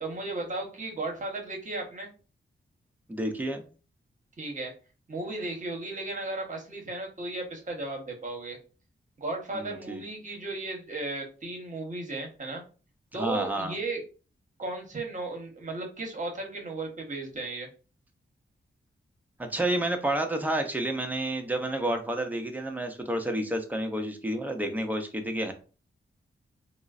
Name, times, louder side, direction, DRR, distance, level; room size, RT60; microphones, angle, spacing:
voice 1, 0.0-2.1 4.4-4.7 5.1-8.6 9.2-12.6 13.1-14.0 14.6-17.7, right 2 dB, 40° right, 2 dB, 0.9 m, -35 dB
voice 2, 3.1-3.7 9.5-10.0 13.1-13.8 19.4-25.5, right 1 dB, 10° right, 4 dB, 0.5 m, -30 dB
3.7 x 2.0 x 2.4 m, 0.35 s
wide cardioid pair, 90°, 20 cm